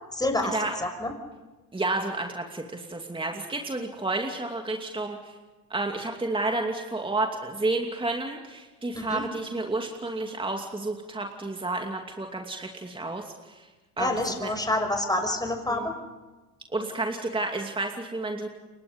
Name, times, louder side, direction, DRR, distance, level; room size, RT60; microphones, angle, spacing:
voice 1, 0.1-1.1 8.9-9.2 14.0-15.9, left 1 dB, 10° left, 5 dB, 5.8 m, -28 dB
voice 2, 1.7-5.3 5.7-13.7 14.0-14.5 15.7-15.9 16.7-18.5, right 2 dB, 10° right, 2 dB, 2.7 m, -31 dB
29.5 x 23.5 x 5.5 m, 1.2 s
hypercardioid pair, 75°, 45 cm